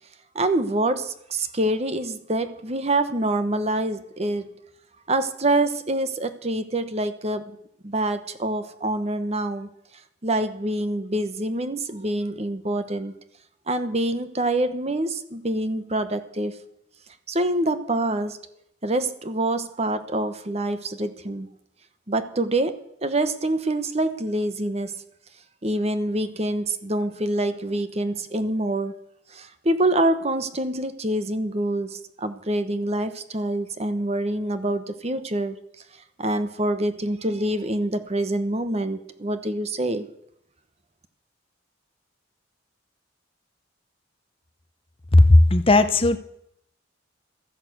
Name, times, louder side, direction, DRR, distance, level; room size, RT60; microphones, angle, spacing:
voice 1, 0.3-4.5 5.1-7.6 7.8-9.7 10.2-13.1 13.7-16.5 17.3-18.4 18.8-21.5 22.1-24.9 25.6-28.9 29.3-35.6 36.2-40.0, right 1 dB, 35° right, 11 dB, 1.1 m, -26 dB
voice 2, 45.1-46.2, left 2 dB, 30° left, 11 dB, 0.7 m, -15 dB
14.0 x 10.5 x 8.0 m, 0.75 s
head